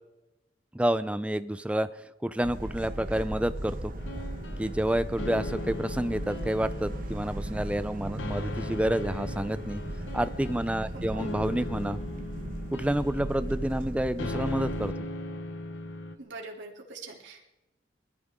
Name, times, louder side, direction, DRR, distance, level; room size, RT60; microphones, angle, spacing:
voice 1, 0.7-1.9 2.2-3.9 4.6-9.8 10.1-12.0 12.7-15.1, right 1 dB, 5° right, 13 dB, 0.5 m, -29 dB
sound 1, 2.4-14.9, right 1 dB, 45° right, 1.1 m, -37 dB
sound 2, 4.0-16.2, left 2 dB, 85° left, 0.9 m, -39 dB
voice 2, 10.9-11.4 16.2-17.5, right 2 dB, 80° right, 0 dB, 3.2 m, -43 dB
21.5 x 13.5 x 3.7 m, 0.97 s
head